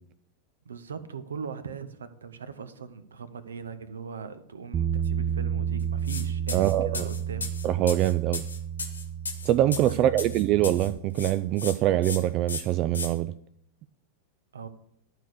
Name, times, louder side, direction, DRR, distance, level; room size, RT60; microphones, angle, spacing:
voice 1, 0.7-7.6 9.9-10.3 14.5-14.7, right 6 dB, 70° right, 13 dB, 0.8 m, -40 dB
Bass guitar, 4.7-11.0, right 8 dB, 20° right, 0.7 m, -31 dB
sound 1, 6.0-6.2 6.5-10.9 11.1-11.7 12.0-12.2 12.5-13.1, left 4 dB, 75° left, 1.5 m, -35 dB
voice 2, 6.5-7.1 7.6-8.4 9.4-13.3, right 13 dB, 40° right, 13 dB, 0.3 m, -24 dB
12.0 x 4.7 x 6.4 m, 0.72 s
figure-of-eight pair, 90°, 0 cm